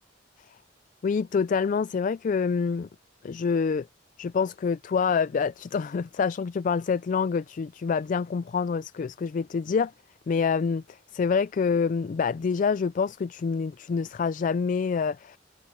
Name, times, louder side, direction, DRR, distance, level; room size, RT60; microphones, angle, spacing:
voice 1, 1.0-2.9 3.2-3.9 4.2-9.9 10.3-15.4, left 5 dB, 45° left, 0.3 m, -26 dB
head